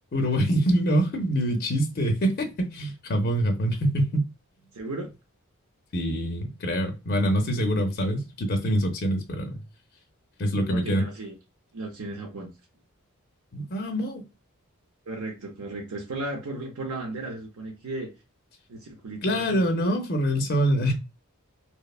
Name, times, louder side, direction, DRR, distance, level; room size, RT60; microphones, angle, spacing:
voice 1, 0.1-4.2 5.9-9.6 10.4-11.0 13.5-14.2 19.2-20.9, equal, 45° left, 0.5 m, -25 dB
voice 2, 4.7-5.1 10.7-11.4 11.7-12.5 15.1-18.1 18.7-19.6, right 2 dB, 90° right, 0.7 m, -35 dB
2.9 x 2.1 x 2.3 m
head